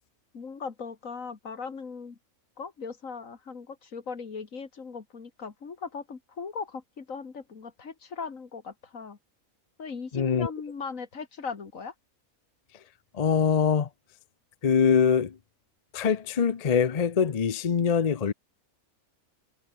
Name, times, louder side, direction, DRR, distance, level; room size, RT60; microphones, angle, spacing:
voice 1, 0.3-2.2 2.6-9.2 9.8-11.9, left 5 dB, 65° left, 2.4 m, -38 dB
voice 2, 10.1-10.5 13.1-13.9 14.6-15.4 15.9-18.3, left 6 dB, 40° left, 0.6 m, -23 dB
omnidirectional pair, 1.5 m